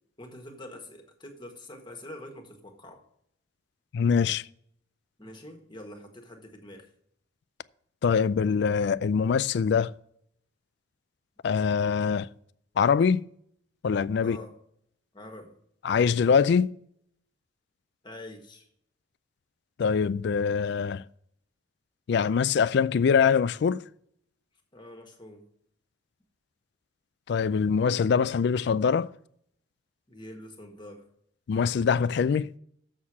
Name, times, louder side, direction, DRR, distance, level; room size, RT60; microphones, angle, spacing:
voice 1, 0.2-3.0 5.2-6.9 14.2-14.5 15.1-15.5 18.0-18.7 24.7-25.4 30.1-31.1, left 1 dB, 25° left, 1.5 m, -45 dB
voice 2, 3.9-4.5 8.0-9.9 11.4-12.3 12.8-13.3 13.8-14.4 15.8-16.7 19.8-21.0 22.1-23.8 27.3-29.1 31.5-32.5, left 6 dB, 60° left, 0.3 m, -23 dB
7.3 x 6.5 x 7.2 m
head